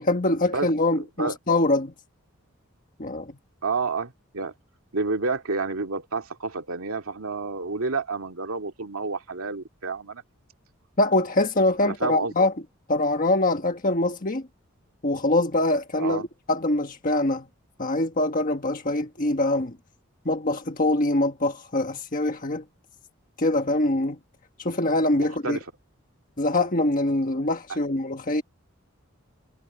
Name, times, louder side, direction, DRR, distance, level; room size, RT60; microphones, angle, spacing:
voice 1, 0.0-1.9 3.0-3.4 11.0-12.5 12.9-14.4 15.0-16.2 16.5-17.4 17.8-19.8 20.2-22.6 23.4-24.2 24.6-25.6 26.4-28.4, left 2 dB, 40° left, 1.4 m, -24 dB
voice 2, 0.9-1.3 3.6-4.5 4.9-10.2 11.8-12.3 16.0-16.3 25.1-25.6, right 4 dB, 90° right, 2.2 m, -29 dB
head